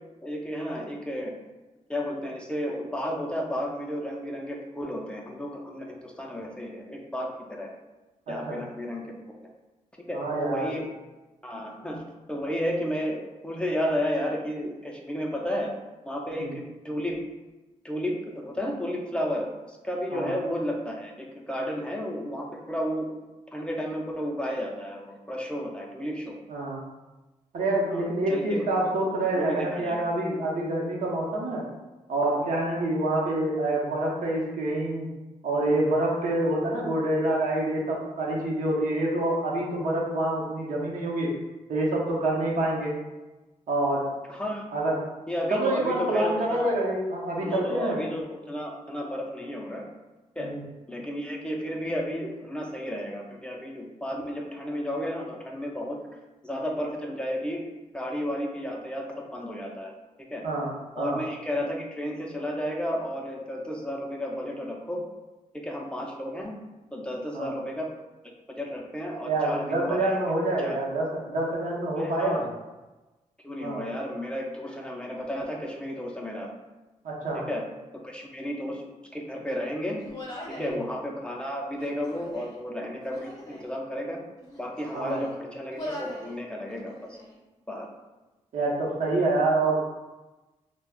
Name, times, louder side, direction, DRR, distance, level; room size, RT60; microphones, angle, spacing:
voice 1, 0.2-1.3 1.9-7.8 8.3-9.0 10.0-10.9 11.4-15.7 16.0-17.2 17.8-23.1 23.5-26.4 27.9-28.7 29.3-30.0 44.3-44.6 45.3-46.7 47.4-49.9 50.4-50.5 50.9-56.0 56.4-57.6 57.9-59.9 60.3-60.4 61.0-65.0 65.6-66.6 66.9-67.9 68.5-70.2 70.6-70.8 72.0-72.5 73.4-76.5 77.5-77.6 78.0-78.8 79.1-80.0 80.5-84.2 84.6-87.2 87.7-87.9, equal, 10° left, -1 dB, 0.4 m, -32 dB
voice 2, 8.3-8.6 10.1-10.7 16.3-16.6 20.1-20.3 26.5-26.8 27.5-31.7 32.1-35.1 35.4-41.3 41.7-42.9 43.7-44.1 44.7-45.0 45.5-48.0 50.4-50.6 60.4-60.7 61.0-61.2 67.3-67.5 69.2-72.5 73.6-73.8 77.0-77.4 80.6-80.8 84.9-85.2 88.5-89.8, right 2 dB, 75° right, -3 dB, 0.7 m, -27 dB
Human voice, 80.0-80.8 81.7-82.6 83.1-83.7 84.4-85.3 85.7-86.3 86.7-87.4, left 1 dB, 30° left, 0.8 m, -41 dB
2.3 x 2.1 x 3.4 m, 1.1 s
cardioid pair, 80°, 13 cm